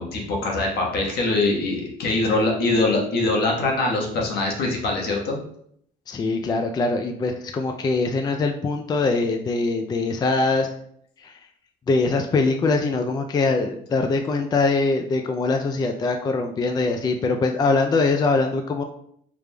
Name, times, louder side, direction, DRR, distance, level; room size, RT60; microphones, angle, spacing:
voice 1, 0.0-5.4, left 2 dB, 70° left, -1 dB, 1.2 m, -23 dB
voice 2, 6.1-10.7 11.2-11.3 11.9-18.8, left 3 dB, 25° left, 5 dB, 0.3 m, -22 dB
4.9 x 3.3 x 2.2 m, 0.68 s
cardioid pair, 110°, 17 cm